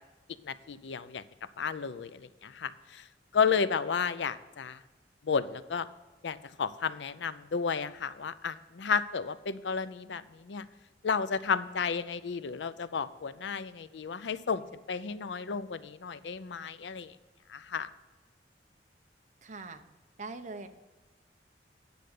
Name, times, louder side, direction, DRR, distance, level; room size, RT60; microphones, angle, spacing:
voice 1, 0.4-1.2 1.6-3.0 3.3-4.8 5.2-5.9 6.2-10.7 11.0-17.2 17.5-17.9, left 6 dB, 90° left, 15 dB, 0.5 m, -32 dB
voice 2, 19.4-19.8 20.2-20.7, right 3 dB, 45° right, 7 dB, 0.8 m, -41 dB
9.8 x 6.6 x 6.6 m, 1.2 s
head